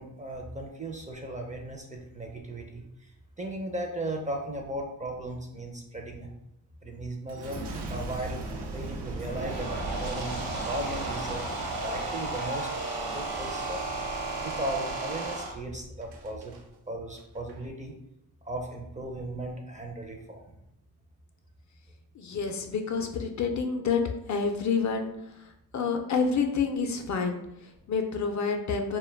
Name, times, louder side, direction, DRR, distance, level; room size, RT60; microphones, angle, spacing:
voice 1, 0.0-3.1 3.4-6.3 6.8-8.4 8.7-10.4 10.7-12.7 13.0-13.8 14.4-16.5 16.9-18.0 18.4-20.6, right 1 dB, 20° right, 2 dB, 0.4 m, -36 dB
Boom, 7.3-16.6 17.2-17.6, right 2 dB, 85° right, 0.5 m, -40 dB
sound 1, 9.1-15.5, right 2 dB, 70° right, 0.9 m, -34 dB
voice 2, 22.1-29.0, left 5 dB, 50° left, 5 dB, 0.4 m, -29 dB
2.2 x 2.1 x 3.2 m, 0.81 s
cardioid pair, 65°, 38 cm